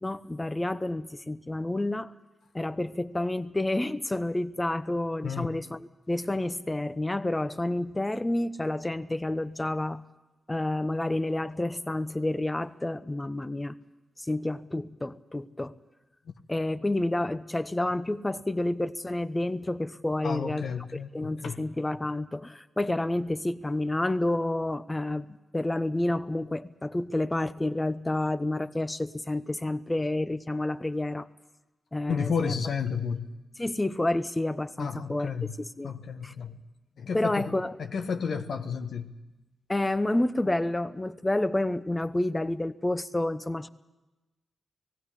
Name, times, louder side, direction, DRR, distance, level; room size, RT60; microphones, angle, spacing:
voice 1, 0.0-2.1 2.5-10.0 10.5-13.8 14.2-15.8 16.5-20.7 21.1-25.3 25.5-31.3 31.9-32.6 33.6-35.3 35.6-35.9 36.2-36.3 37.1-37.7 39.7-43.7, left 1 dB, 20° left, 13 dB, 0.9 m, -29 dB
voice 2, 20.2-21.6 32.1-33.3 34.8-35.5 35.8-36.6 37.0-39.1, left 6 dB, 70° left, 7 dB, 1.3 m, -32 dB
18.5 x 15.5 x 9.9 m, 1.1 s
cardioid pair, 55°, 0 cm